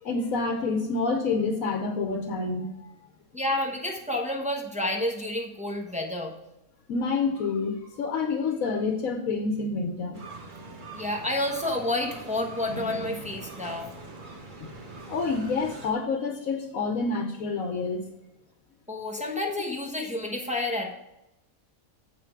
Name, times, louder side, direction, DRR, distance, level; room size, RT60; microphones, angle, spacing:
voice 1, 0.0-2.7 6.9-10.2 14.6-14.7 15.1-18.0, left 4 dB, 75° left, 4 dB, 1.2 m, -28 dB
voice 2, 3.3-6.3 10.9-13.9 18.9-20.9, left 1 dB, 5° right, 0 dB, 0.9 m, -30 dB
sound 1, 10.1-15.9, right 3 dB, 40° right, 1.2 m, -42 dB
7.6 x 5.8 x 4.5 m, 0.91 s
omnidirectional pair, 1.4 m